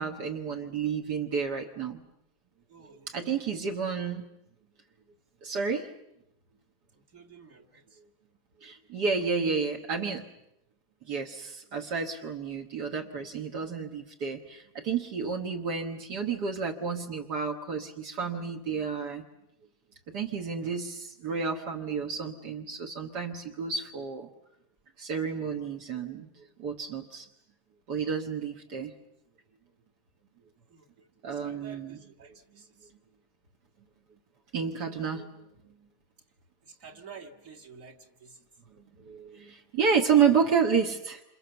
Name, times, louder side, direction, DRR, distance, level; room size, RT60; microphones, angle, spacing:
voice 1, 0.0-2.0 3.1-4.2 5.4-5.9 8.6-10.2 11.1-19.2 20.1-24.3 25.0-27.3 27.9-28.9 31.2-32.0 34.5-35.3 39.0-41.2, right 6 dB, 75° right, 3 dB, 2.0 m, -30 dB
voice 2, 2.7-3.7 7.1-8.0 28.7-28.8 30.7-32.9 36.6-38.4, right 5 dB, 50° right, 2 dB, 2.5 m, -51 dB
28.5 x 27.5 x 7.0 m, 0.84 s
omnidirectional pair, 1.8 m